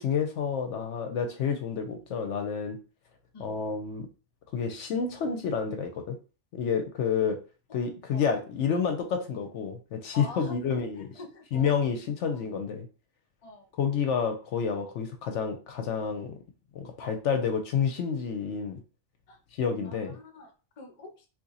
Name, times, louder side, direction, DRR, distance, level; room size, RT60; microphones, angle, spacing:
voice 1, 0.0-2.8 3.4-4.1 4.5-6.2 6.5-7.4 7.7-11.1 11.5-12.9 13.7-16.4 16.7-18.8 19.5-20.1, left 6 dB, 70° left, 5 dB, 0.8 m, -29 dB
voice 2, 10.1-11.7 12.2-12.4 13.4-13.7 17.0-17.2 19.3-19.4 19.8-21.3, left 3 dB, 40° left, 4 dB, 0.6 m, -45 dB
2.8 x 2.4 x 3.9 m, 0.34 s
omnidirectional pair, 1.3 m